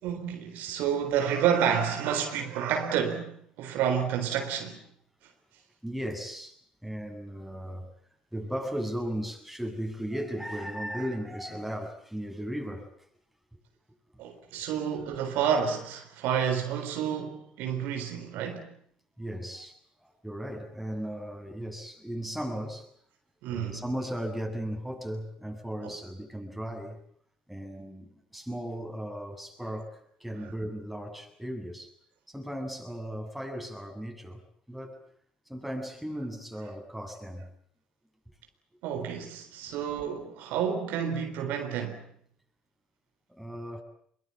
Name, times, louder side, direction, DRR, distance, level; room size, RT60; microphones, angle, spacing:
voice 1, 0.0-4.8 14.2-18.7 23.4-23.8 30.4-30.5 38.8-42.0, right 8 dB, 75° right, 4.0 m, -29 dB
voice 2, 5.8-6.6 6.8-7.9 8.3-12.9 19.2-22.9 23.5-27.0 27.5-31.9 32.3-34.4 34.7-35.0 35.5-37.5 43.4-43.8, equal, ahead, 7.3 m, -36 dB
24.0 x 23.0 x 8.6 m
supercardioid pair, 75°, 3 cm